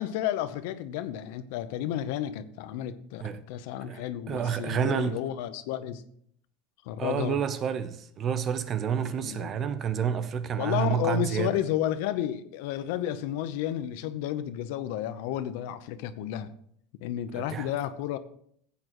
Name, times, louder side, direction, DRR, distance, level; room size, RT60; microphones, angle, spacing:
voice 1, 0.0-6.0 6.8-7.4 9.0-9.5 10.6-16.5 17.0-18.2, left 11 dB, 70° left, 0.8 m, -32 dB
voice 2, 3.9-5.2 7.0-11.6 17.3-17.7, right 8 dB, 30° right, 0.7 m, -29 dB
16.0 x 8.6 x 3.1 m
supercardioid pair, 150°, 0 cm